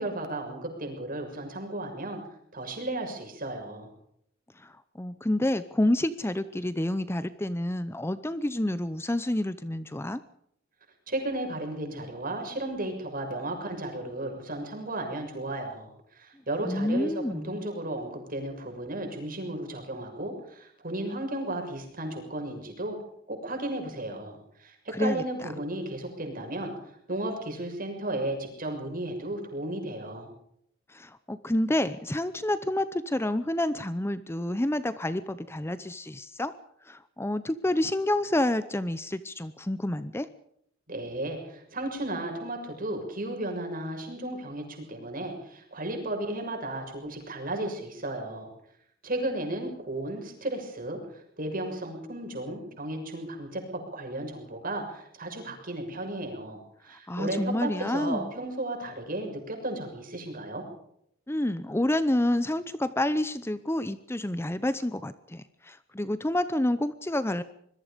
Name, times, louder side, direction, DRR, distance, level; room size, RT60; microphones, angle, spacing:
voice 1, 0.0-2.2 2.5-3.9 11.1-23.0 23.3-26.7 27.1-30.3 40.9-48.5 49.0-51.0 51.4-60.6, right 1 dB, 45° right, 3 dB, 6.6 m, -34 dB
voice 2, 4.6-10.2 16.6-17.6 24.9-25.2 30.9-36.5 36.9-40.3 57.1-58.3 61.3-67.4, left 1 dB, 15° left, 13 dB, 0.7 m, -28 dB
25.5 x 22.0 x 5.2 m, 0.71 s
head